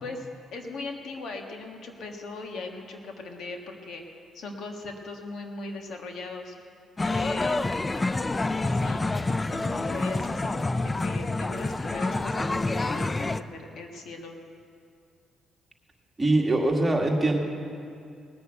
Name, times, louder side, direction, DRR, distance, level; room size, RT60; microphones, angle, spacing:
voice 1, 0.0-4.0 4.3-6.5 7.1-7.6 8.6-9.0 9.5-14.4, left 3 dB, 70° left, 3 dB, 1.5 m, -39 dB
sound 1, 7.0-13.4, left 2 dB, 20° left, 0.4 m, -27 dB
voice 2, 16.2-17.4, right 2 dB, 20° right, 0 dB, 2.0 m, -23 dB
19.5 x 6.9 x 8.0 m, 2.4 s
cardioid pair, 90°, 0 cm